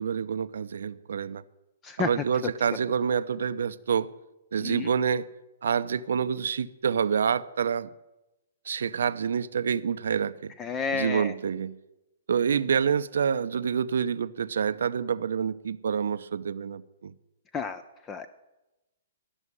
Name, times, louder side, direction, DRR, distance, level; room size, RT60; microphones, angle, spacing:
voice 1, 0.0-1.4 2.0-4.1 4.5-5.2 5.6-7.9 8.7-10.5 10.9-11.8 12.3-17.1, right 7 dB, 75° right, 14 dB, 0.5 m, -27 dB
voice 2, 10.6-11.3 17.5-17.8 18.1-18.3, left 5 dB, 20° left, 12 dB, 0.4 m, -30 dB
12.5 x 6.3 x 9.6 m, 1.0 s
hypercardioid pair, 145°, 0 cm